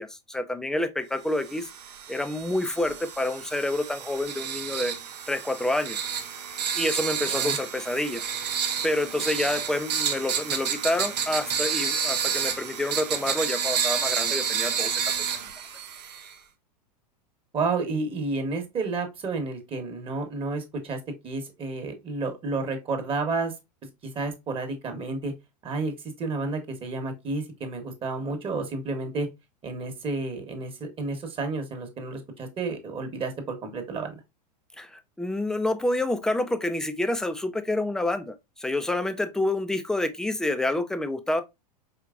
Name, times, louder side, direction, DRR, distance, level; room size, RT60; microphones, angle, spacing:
voice 1, 0.0-1.7 2.1-4.9 5.3-6.0 6.7-8.2 8.8-15.3 34.8-41.4, left 1 dB, 5° left, 0.3 m, -28 dB
sound 1, 1.4-16.3, right 7 dB, 80° right, 0.9 m, -30 dB
voice 2, 17.5-23.5 24.0-25.3 25.6-29.3 29.6-34.2, right 3 dB, 25° right, 1.0 m, -31 dB
4.7 x 2.9 x 2.4 m
hypercardioid pair, 110°, 21 cm